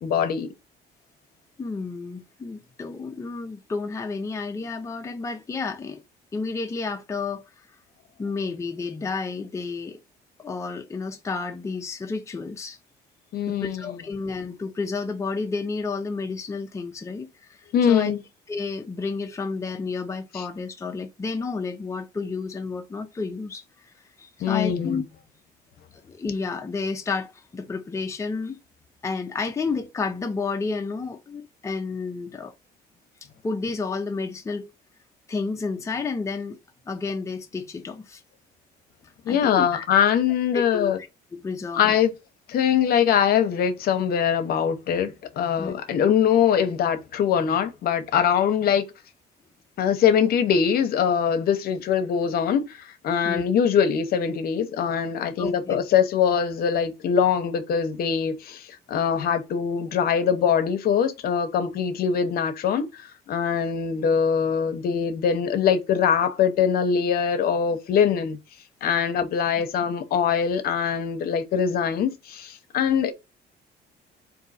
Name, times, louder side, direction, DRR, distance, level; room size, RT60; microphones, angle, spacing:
voice 1, 0.0-0.5 13.3-13.8 17.7-18.2 20.3-20.4 24.4-25.0 39.3-41.0 41.8-42.1 42.5-48.8 49.8-68.4 68.8-73.1, left 8 dB, 65° left, 0.8 m, -23 dB
voice 2, 1.6-6.0 6.3-7.4 8.2-10.0 10.4-12.8 13.5-17.6 17.9-18.1 18.5-23.6 24.2-25.0 26.1-28.6 29.0-32.5 33.4-34.7 35.3-36.6 36.9-38.2 39.3-39.9 40.5-41.9 45.6-45.8 53.2-53.4 55.4-55.8, left 4 dB, 15° left, 0.6 m, -31 dB
3.7 x 2.7 x 4.1 m
cardioid pair, 110°, 17 cm